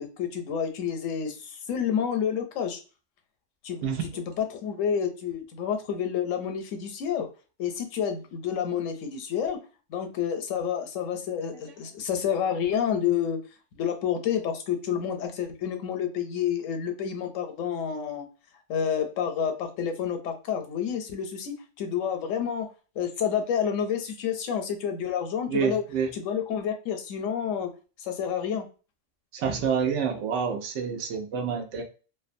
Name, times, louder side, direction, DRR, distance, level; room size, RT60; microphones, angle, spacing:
voice 1, 0.0-2.8 3.6-3.9 4.2-7.3 7.6-9.6 9.9-13.4 13.7-18.3 18.7-22.7 23.0-25.8 26.1-27.7 28.0-28.7, left 8 dB, 85° left, 5 dB, 1.0 m, -29 dB
voice 2, 25.5-26.1 29.3-31.8, right 6 dB, 75° right, 4 dB, 0.9 m, -28 dB
2.5 x 2.2 x 2.5 m, 0.34 s
omnidirectional pair, 1.3 m